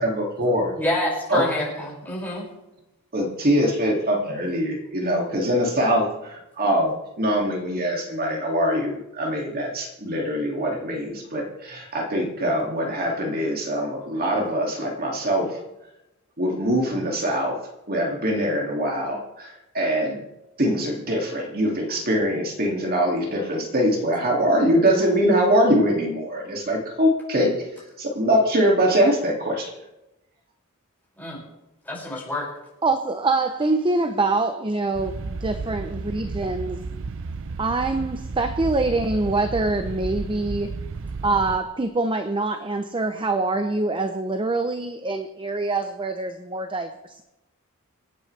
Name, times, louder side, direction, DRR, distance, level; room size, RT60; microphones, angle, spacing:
voice 1, 0.0-0.7 1.3-1.4 3.1-15.6 16.4-17.6 17.9-20.2 20.6-27.6 28.0-29.8, equal, 45° right, 0 dB, 2.5 m, -23 dB
voice 2, 0.8-2.4 31.2-31.4 31.9-32.5, left 1 dB, 10° left, -5 dB, 6.0 m, -27 dB
voice 3, 32.8-36.8 37.6-40.7 41.2-47.2, right 3 dB, 25° right, 7 dB, 0.7 m, -25 dB
sound 1, 34.9-41.6, right 4 dB, 65° right, 0.6 m, -33 dB
27.0 x 9.4 x 3.3 m, 0.94 s
head